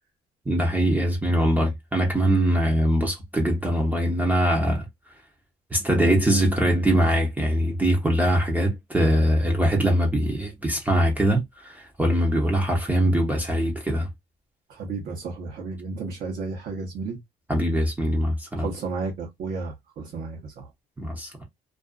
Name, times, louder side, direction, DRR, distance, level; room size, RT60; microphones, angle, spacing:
voice 1, 0.5-4.9 5.7-14.1 17.5-18.7 21.0-21.3, equal, 10° right, 0.7 m, -22 dB
voice 2, 14.7-17.2 18.6-20.7, right 4 dB, 60° right, 0.9 m, -33 dB
2.5 x 2.3 x 2.3 m
cardioid pair, 110°, 17 cm